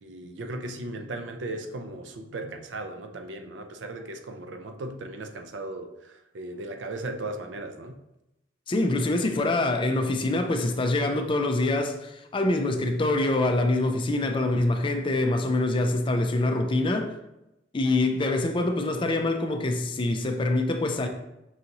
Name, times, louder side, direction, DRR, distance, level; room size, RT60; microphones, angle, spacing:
voice 1, 0.0-8.0, right 2 dB, 80° right, 0.5 m, -37 dB
voice 2, 8.7-17.1 17.7-21.1, left 2 dB, 30° left, 0.4 m, -25 dB
5.6 x 2.6 x 2.9 m
head